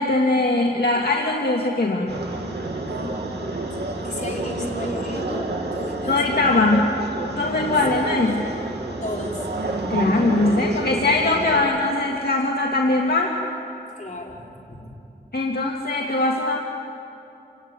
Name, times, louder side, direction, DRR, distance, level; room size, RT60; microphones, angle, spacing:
voice 1, 0.0-2.1 6.1-6.9 7.3-8.4 9.9-13.3 15.3-16.6, left 2 dB, 70° left, -1 dB, 2.0 m, -21 dB
sound 1, 2.1-11.6, right 2 dB, 90° right, 2.3 m, -29 dB
voice 2, 2.9-3.4 4.0-6.5 9.0-9.4 14.0-14.8, left 1 dB, 45° left, -2 dB, 4.8 m, -33 dB
28.0 x 16.5 x 9.6 m, 2.8 s
wide cardioid pair, 50°, 17 cm